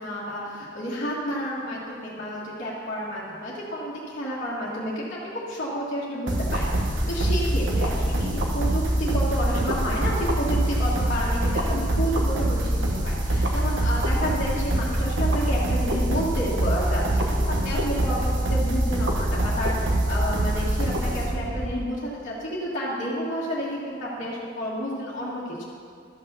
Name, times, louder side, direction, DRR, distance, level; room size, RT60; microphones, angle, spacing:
voice 1, 0.0-4.9 5.5-25.6, equal, 45° left, -9 dB, 1.7 m, -30 dB
sound 1, 6.3-21.7, right 1 dB, 65° right, 1.3 m, -24 dB
12.5 x 5.6 x 6.8 m, 2.2 s
head